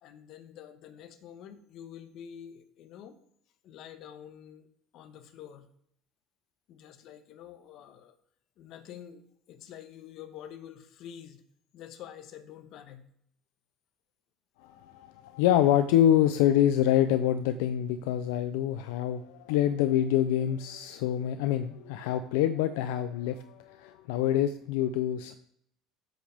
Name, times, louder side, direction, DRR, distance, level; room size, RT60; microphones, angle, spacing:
voice 1, 0.0-3.2 3.6-4.7 4.9-5.7 6.7-8.1 8.6-11.4 11.7-13.1 15.3-15.4, left 9 dB, 60° left, 9 dB, 1.3 m, -47 dB
voice 2, 14.6-25.3, left 11 dB, 85° left, 10 dB, 0.6 m, -26 dB
13.5 x 8.0 x 3.6 m, 0.69 s
supercardioid pair, 100°, 0 cm